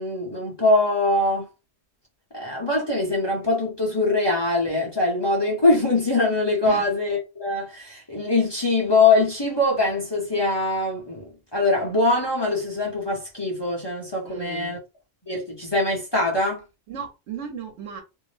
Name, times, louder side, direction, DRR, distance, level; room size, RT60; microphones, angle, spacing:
voice 1, 0.0-1.5 2.3-14.8 15.3-16.6, left 2 dB, 25° left, 0.8 m, -23 dB
voice 2, 14.2-14.8 16.9-18.0, right 7 dB, 80° right, 1.1 m, -35 dB
2.6 x 2.0 x 3.1 m
omnidirectional pair, 1.2 m